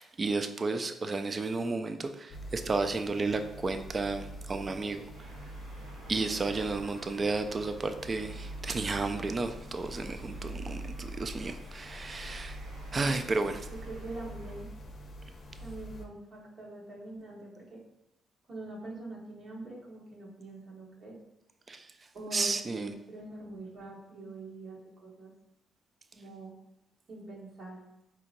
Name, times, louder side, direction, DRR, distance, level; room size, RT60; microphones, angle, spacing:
voice 1, 0.0-5.3 6.1-12.6 12.9-13.7 21.7-22.9, right 3 dB, 35° right, 8 dB, 0.3 m, -33 dB
sound 1, 2.3-16.1, equal, 45° left, 0.6 m, -44 dB
sound 2, 5.1-14.6, right 3 dB, 85° right, 0.7 m, -54 dB
voice 2, 13.7-14.7 15.6-17.8 18.5-21.2 22.1-25.3 26.1-26.5 27.1-27.8, right 2 dB, 55° right, -5 dB, 1.3 m, -44 dB
4.4 x 2.8 x 2.6 m, 0.87 s
cardioid pair, 90°, 0 cm